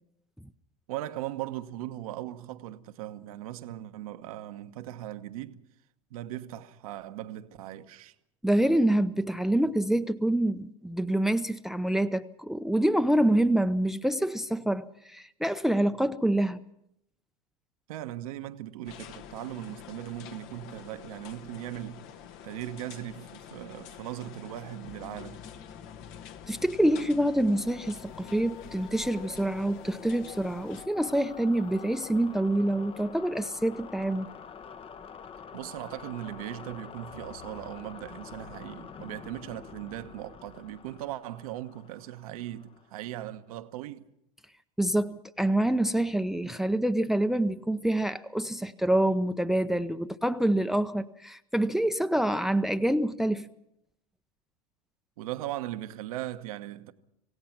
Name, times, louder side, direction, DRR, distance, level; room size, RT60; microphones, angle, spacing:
voice 1, 0.9-5.6 6.1-8.1 17.9-22.0 22.4-25.4 35.5-44.1 55.2-56.9, right 14 dB, 75° right, 1.2 m, -39 dB
voice 2, 8.4-16.6 26.5-34.3 44.8-53.5, right 1 dB, ahead, 0.7 m, -26 dB
sound 1, 18.8-30.9, left 9 dB, 60° left, 1.6 m, -47 dB
sound 2, 24.9-43.3, left 6 dB, 30° left, 1.0 m, -47 dB
27.5 x 16.5 x 6.0 m
hypercardioid pair, 90°, 19 cm